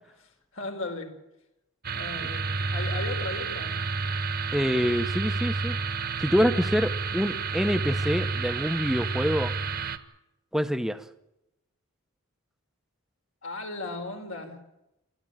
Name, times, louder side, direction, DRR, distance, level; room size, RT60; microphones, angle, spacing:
voice 1, 0.2-1.1 1.9-3.7 13.4-14.6, left 2 dB, 70° left, 3 dB, 4.6 m, -36 dB
sound 1, 1.8-10.0, right 4 dB, 45° right, 1.4 m, -30 dB
voice 2, 4.5-5.8 6.2-9.5 10.5-11.0, equal, ahead, 11 dB, 1.0 m, -26 dB
29.0 x 14.0 x 9.1 m, 0.89 s
head